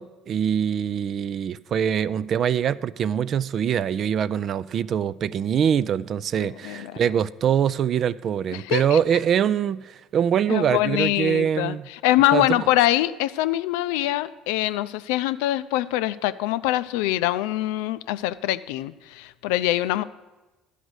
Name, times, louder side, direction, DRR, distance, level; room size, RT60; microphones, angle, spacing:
voice 1, 0.0-11.9 12.3-12.6, right 8 dB, 55° right, 0.3 m, -24 dB
voice 2, 6.4-6.9 8.5-9.0 10.5-20.0, left 15 dB, 80° left, 0.4 m, -24 dB
12.0 x 5.0 x 8.0 m
hypercardioid pair, 65°, 0 cm